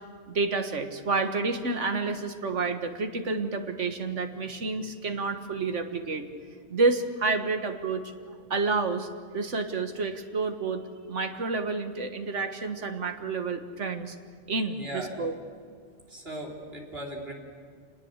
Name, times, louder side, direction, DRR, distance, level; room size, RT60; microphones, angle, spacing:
voice 1, 0.3-6.3 6.7-8.1 8.5-9.1 9.3-10.8 11.1-14.2 14.5-15.3, right 3 dB, 85° right, 7 dB, 2.0 m, -29 dB
voice 2, 14.7-15.2 16.1-17.3, right 1 dB, 55° right, -1 dB, 4.2 m, -38 dB
27.0 x 19.5 x 8.2 m, 2.1 s
omnidirectional pair, 1.2 m